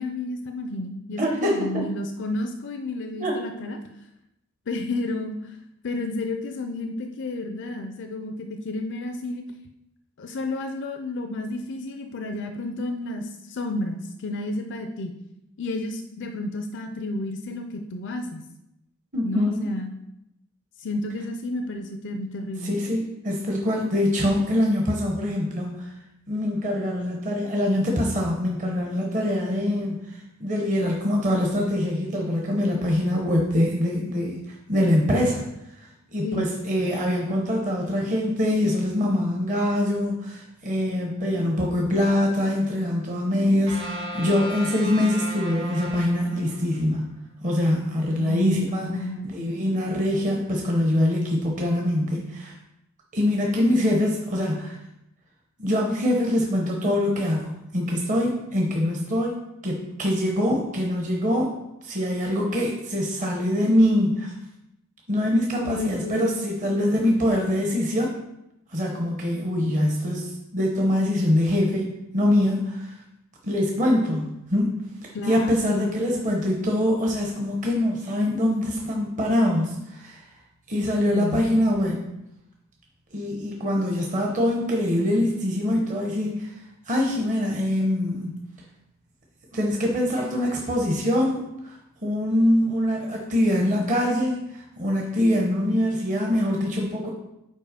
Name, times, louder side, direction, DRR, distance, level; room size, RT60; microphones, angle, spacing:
voice 1, 0.0-3.8 4.7-5.6 5.8-9.4 10.2-15.1 15.6-18.4 19.2-19.9 20.8-22.8 36.2-36.6 48.1-49.5 65.6-67.2 75.1-75.9 81.1-81.6, left 2 dB, 55° left, 6 dB, 0.5 m, -31 dB
voice 2, 1.2-1.8 3.2-3.3 19.1-19.7 22.6-25.9 26.3-29.9 30.4-34.4 34.7-35.4 36.1-47.0 47.4-49.0 49.2-52.5 53.1-54.8 55.6-61.5 61.8-64.3 65.1-68.1 68.7-71.9 72.1-73.0 73.4-74.7 75.0-80.2 80.7-82.0 83.1-86.5 86.9-88.3 89.5-91.4 92.0-97.1, left 1 dB, 35° right, 0 dB, 0.9 m, -24 dB
sound 1, 43.7-46.9, equal, 65° right, 2.0 m, -35 dB
5.4 x 4.4 x 5.0 m, 0.85 s
head